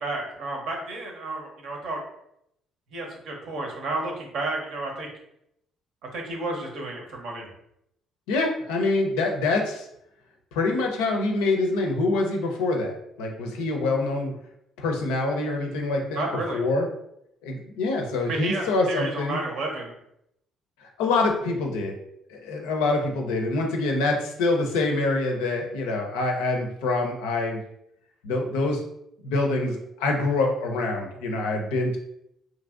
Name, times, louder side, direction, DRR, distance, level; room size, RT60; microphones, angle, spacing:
voice 1, 0.0-2.0 2.9-5.1 6.1-7.5 16.2-16.6 18.3-19.9, right 2 dB, 65° right, 1 dB, 0.7 m, -31 dB
voice 2, 8.3-9.9 10.5-14.3 14.8-16.2 16.5-16.9 17.4-19.4 20.8-21.9 22.3-27.6 28.2-28.8 29.2-32.0, left 2 dB, 75° left, 2 dB, 0.4 m, -25 dB
2.9 x 2.6 x 2.4 m, 0.78 s
hypercardioid pair, 50°, 0 cm